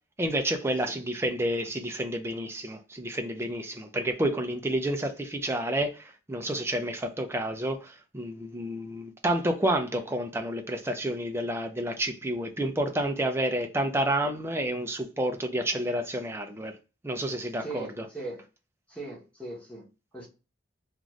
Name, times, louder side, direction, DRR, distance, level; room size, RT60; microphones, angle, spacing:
voice 1, 0.2-16.8 17.0-18.1, right 1 dB, 10° right, 0.4 m, -30 dB
voice 2, 17.6-18.4 18.9-19.9 20.1-20.3, right 2 dB, 5° left, 1.0 m, -39 dB
2.5 x 2.5 x 3.1 m
head